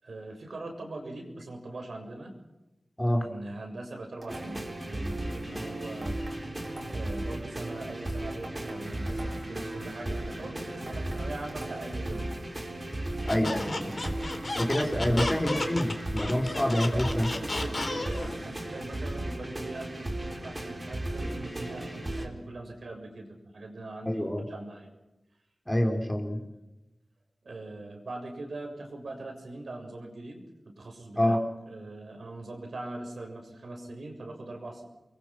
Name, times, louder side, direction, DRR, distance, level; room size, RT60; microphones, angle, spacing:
voice 1, 0.0-2.3 3.2-6.5 6.9-12.4 13.3-14.0 15.0-15.4 16.9-24.9 25.8-25.9 27.4-31.4 31.7-34.8, right 2 dB, 70° right, 3 dB, 7.0 m, -41 dB
sound 1, 4.2-4.8 6.0-7.2 8.4-9.6 10.8-12.1 13.3-14.5, right 1 dB, 50° right, 6.6 m, -46 dB
sound 2, 4.3-22.3, right 1 dB, 25° right, 4.3 m, -35 dB
Squeak, 13.3-18.3, left 2 dB, 40° left, 3.8 m, -33 dB
voice 2, 13.3-13.6 14.6-17.3 24.1-24.4 25.7-26.4 31.2-31.4, left 1 dB, 10° left, 3 dB, 3.8 m, -26 dB
29.0 x 22.5 x 6.1 m, 0.98 s
wide cardioid pair, 80°, 0 cm